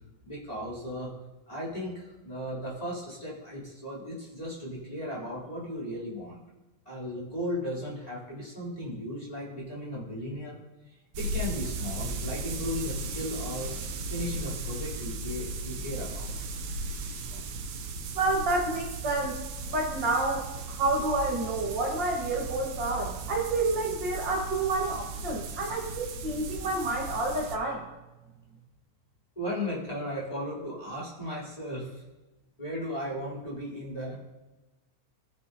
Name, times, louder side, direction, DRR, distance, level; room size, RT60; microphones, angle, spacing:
voice 1, 0.2-1.1 1.5-6.4 6.8-10.6 11.2-13.7 14.1-16.3 29.3-32.0 32.6-34.2, left 1 dB, 10° left, -8 dB, 3.0 m, -36 dB
sound 1, 11.1-27.6, right 2 dB, 75° right, 2.0 m, -36 dB
voice 2, 18.1-27.8, right 2 dB, 50° right, -2 dB, 1.5 m, -29 dB
18.5 x 6.7 x 2.7 m, 1.1 s
omnidirectional pair, 3.4 m